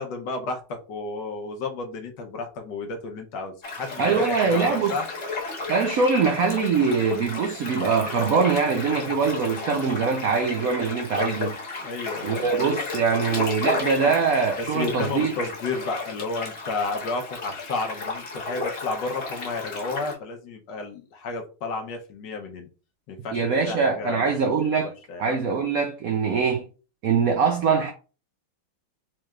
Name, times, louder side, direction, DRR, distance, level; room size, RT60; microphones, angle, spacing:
voice 1, 0.0-5.1 11.8-12.6 14.0-14.1 14.6-22.7 23.1-24.3 24.6-25.2, left 3 dB, 70° left, 1.3 m, -32 dB
sound 1, 3.6-20.1, left 3 dB, 40° left, 1.0 m, -33 dB
voice 2, 4.0-5.0 5.7-11.5 12.2-15.3 23.3-24.9 25.2-26.7 27.0-27.9, right 5 dB, 80° right, 0.7 m, -23 dB
4.5 x 3.2 x 2.4 m
omnidirectional pair, 2.2 m